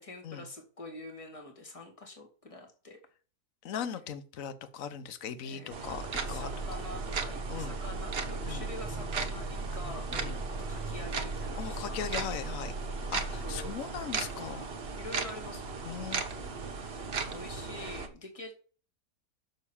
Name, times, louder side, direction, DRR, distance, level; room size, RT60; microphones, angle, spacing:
voice 1, 0.0-3.0 5.4-5.9 6.2-12.2 13.4-13.8 15.0-18.6, left 2 dB, 20° left, 1 dB, 2.2 m, -46 dB
voice 2, 3.6-6.5 7.5-7.7 8.4-8.7 10.1-10.4 11.6-14.7 15.8-16.2, left 8 dB, 60° left, 12 dB, 1.3 m, -39 dB
sound 1, 5.7-18.1, right 4 dB, 40° right, 1.2 m, -37 dB
sound 2, 6.1-13.7, right 2 dB, 25° right, 1.7 m, -39 dB
6.7 x 6.1 x 7.1 m, 0.39 s
omnidirectional pair, 1.7 m